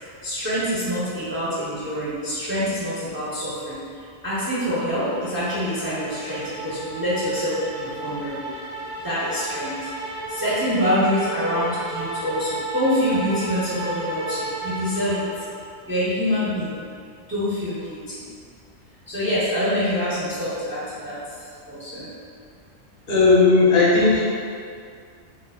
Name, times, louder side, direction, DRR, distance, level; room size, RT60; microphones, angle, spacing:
voice 1, 0.2-3.8 4.2-8.5 9.0-9.7 10.3-15.2 15.9-16.7 17.3-18.3 19.1-21.2 21.7-22.1, equal, 15° right, -10 dB, 0.4 m, -25 dB
sound 1, 4.4-15.7, right 2 dB, 80° right, 1.0 m, -34 dB
voice 2, 23.1-24.2, left 3 dB, 40° left, -7 dB, 0.9 m, -15 dB
3.0 x 2.0 x 4.1 m, 2.3 s
omnidirectional pair, 1.3 m